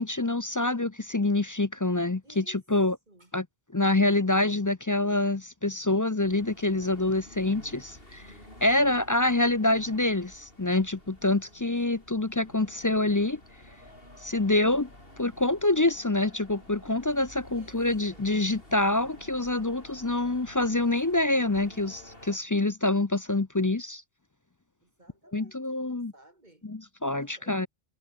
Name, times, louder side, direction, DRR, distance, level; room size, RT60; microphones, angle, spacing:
voice 1, 0.0-3.0 3.3-3.4 3.7-8.2 8.6-13.4 14.2-14.9 15.2-24.0 25.3-26.1 26.6-27.7, left 2 dB, 25° left, 0.5 m, -26 dB
voice 2, 2.2-2.6 3.1-3.3 17.5-18.3 24.8-26.7 27.1-27.7, right 1 dB, 45° right, 3.7 m, -58 dB
sound 1, 6.2-22.4, left 1 dB, 60° left, 8.0 m, -51 dB
omnidirectional pair, 1.1 m